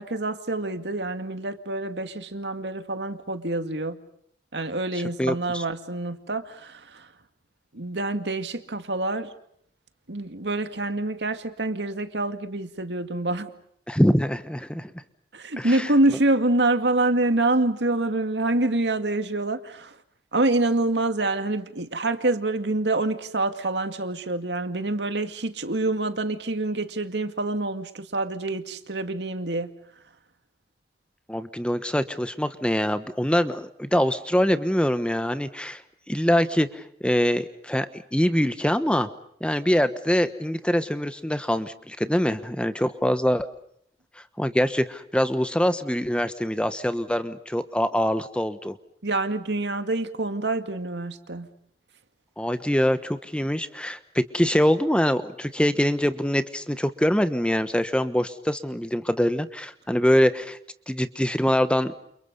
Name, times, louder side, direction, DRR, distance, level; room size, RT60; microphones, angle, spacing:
voice 1, 0.0-4.0 4.5-7.1 7.7-9.3 10.1-13.5 15.3-20.0 20.3-29.7 49.0-51.5, right 2 dB, 85° right, 8 dB, 2.2 m, -26 dB
voice 2, 4.9-5.6 13.9-14.9 15.6-15.9 31.3-35.8 36.1-39.1 39.4-43.5 44.4-48.8 52.4-60.6 60.9-61.9, equal, 5° left, 11 dB, 1.2 m, -24 dB
29.5 x 29.0 x 5.5 m, 0.68 s
head